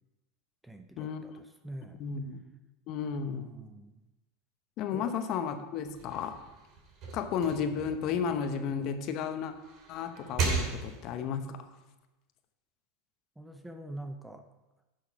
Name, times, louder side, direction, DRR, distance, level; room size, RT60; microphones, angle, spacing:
voice 1, 0.6-2.0 3.3-4.0 4.9-5.1 13.4-14.5, right 1 dB, 5° right, 7 dB, 0.7 m, -45 dB
voice 2, 1.9-2.4 2.9-3.5 4.8-6.4 7.1-9.5 9.9-11.7, left 7 dB, 50° left, 8 dB, 0.9 m, -33 dB
sound 1, 5.8-9.0 9.5-11.3, right 4 dB, 50° right, 2.8 m, -36 dB
10.5 x 6.4 x 4.7 m, 1.0 s
supercardioid pair, 115°, 0 cm